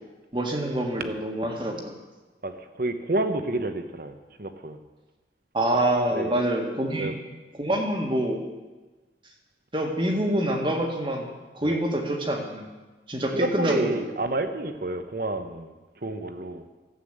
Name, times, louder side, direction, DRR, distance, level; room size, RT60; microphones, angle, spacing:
voice 1, 0.3-2.0 5.5-7.1 7.6-8.4 9.7-11.3 11.5-12.7 13.1-14.0, right 1 dB, 30° right, 2 dB, 1.7 m, -26 dB
voice 2, 2.4-4.1 4.4-4.8 6.1-6.4 7.0-7.1 11.6-11.8 13.3-15.7 16.0-16.6, right 2 dB, 50° right, 9 dB, 1.0 m, -29 dB
13.5 x 8.4 x 8.0 m, 1.2 s
head